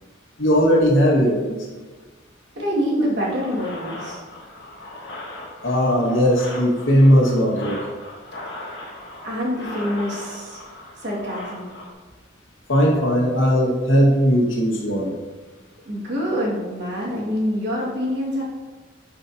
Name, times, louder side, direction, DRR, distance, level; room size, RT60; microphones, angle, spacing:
voice 1, 0.4-1.6 5.6-7.8 12.7-15.1, equal, 85° left, -2 dB, 1.8 m, -18 dB
voice 2, 2.5-4.2 8.6-8.8 9.2-10.7 11.0-11.7 15.9-18.4, equal, 65° right, -4 dB, 2.1 m, -26 dB
sound 1, 3.2-11.9, left 1 dB, 60° left, 1.5 m, -38 dB
11.5 x 5.2 x 2.8 m, 1.3 s
head